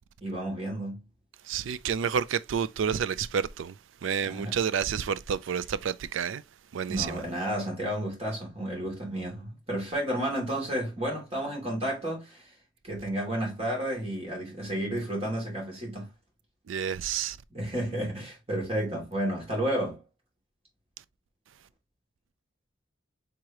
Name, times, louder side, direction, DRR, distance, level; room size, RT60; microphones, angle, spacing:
voice 1, 0.2-1.0 4.2-4.6 6.9-12.5 12.8-16.1 17.5-20.0, right 1 dB, 30° right, 2.7 m, -32 dB
voice 2, 1.5-3.8 4.0-6.4 6.7-7.2 16.7-17.4, right 7 dB, 80° right, 0.4 m, -29 dB
4.7 x 3.6 x 2.9 m
head